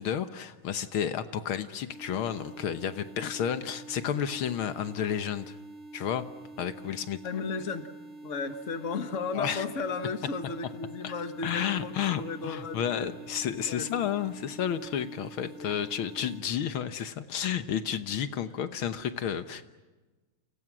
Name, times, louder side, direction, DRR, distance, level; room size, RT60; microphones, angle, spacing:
voice 1, 0.0-5.6 5.9-6.3 6.6-7.2 9.4-9.7 11.0-11.1 11.4-19.6, left 9 dB, 75° left, 11 dB, 1.9 m, -31 dB
sound 1, 1.9-16.4, right 2 dB, 90° right, 6.0 m, -47 dB
voice 2, 7.2-7.9 8.2-13.2 13.6-14.2 15.5-16.3, left 4 dB, 40° left, 9 dB, 1.8 m, -35 dB
29.5 x 28.5 x 6.1 m, 1.2 s
omnidirectional pair, 2.3 m